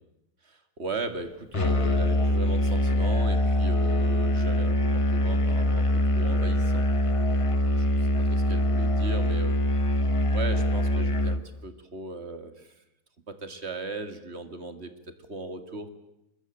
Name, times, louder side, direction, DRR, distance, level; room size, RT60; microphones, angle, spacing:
voice 1, 0.4-9.6 10.3-12.8 13.3-14.9 15.3-15.9, right 2 dB, 35° right, 9 dB, 2.3 m, -37 dB
Musical instrument, 1.5-11.5, left 1 dB, 30° left, 0.5 m, -24 dB
24.5 x 21.5 x 9.0 m, 0.88 s
omnidirectional pair, 2.1 m